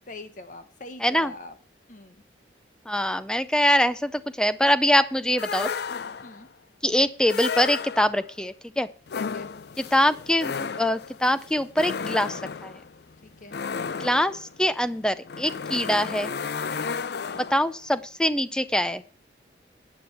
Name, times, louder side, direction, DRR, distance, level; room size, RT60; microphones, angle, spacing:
voice 1, 0.1-1.6 1.9-2.2 6.2-6.5 9.2-9.5 13.2-13.6 16.8-17.2, left 2 dB, 45° left, 9 dB, 1.0 m, -43 dB
voice 2, 1.0-1.3 2.9-5.7 6.8-8.9 9.8-12.7 14.0-16.3 17.5-19.0, equal, 5° left, 13 dB, 0.5 m, -24 dB
sound 1, 5.4-6.5 7.3-8.3 9.1-17.8, left 5 dB, 60° left, 0.4 m, -33 dB
11.5 x 8.6 x 4.4 m, 0.38 s
head